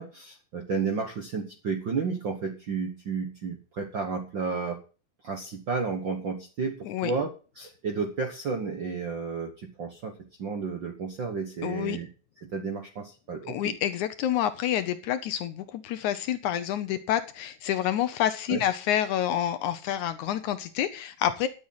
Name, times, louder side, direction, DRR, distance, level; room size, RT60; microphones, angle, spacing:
voice 1, 0.0-4.8 5.2-7.3 7.5-10.1 10.4-12.1 12.5-13.7 18.5-18.6, right 5 dB, 60° right, 4 dB, 1.2 m, -32 dB
voice 2, 11.6-12.0 13.5-21.5, left 11 dB, 75° left, 11 dB, 2.0 m, -28 dB
12.5 x 8.0 x 5.7 m, 0.36 s
omnidirectional pair, 3.9 m